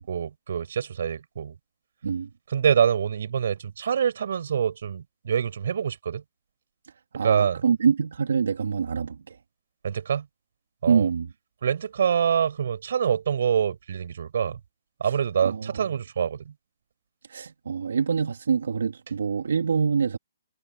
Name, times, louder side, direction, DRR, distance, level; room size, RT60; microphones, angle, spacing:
voice 1, 0.0-1.5 2.5-6.2 7.1-7.6 9.8-10.3 10.8-11.1 11.6-14.6 15.0-16.5, right 8 dB, 55° right, 6.6 m, -25 dB
voice 2, 7.1-9.4 10.9-11.3 15.4-15.8 17.3-20.2, right 6 dB, 90° right, 3.2 m, -25 dB
hypercardioid pair, 175°, 0 cm